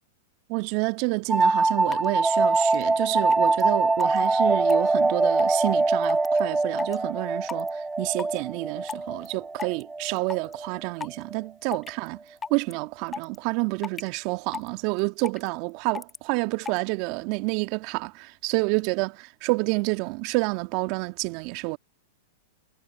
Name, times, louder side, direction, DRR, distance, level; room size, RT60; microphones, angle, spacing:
voice 1, 0.5-12.2 12.5-21.8, right 27 dB, 50° right, 1.8 m, -29 dB
sound 1, 1.3-10.7, right 3 dB, 10° right, 1.2 m, -23 dB
sound 2, 1.4-1.5 1.9-2.1 2.6-2.8 3.3-3.6 4.0-4.3 4.7-4.9 5.4-5.6 6.0-6.4 6.8-7.0 7.5-7.7 8.2-8.4 8.9-9.3 9.6-9.8 10.2-10.5 11.0-11.2 11.7-12.1 12.4-12.7 13.1-13.4 13.8-14.1 14.5-14.7 15.0-15.5 15.9-16.2 16.7-16.8, left 5 dB, 15° left, 1.6 m, -34 dB
hypercardioid pair, 110°, 0 cm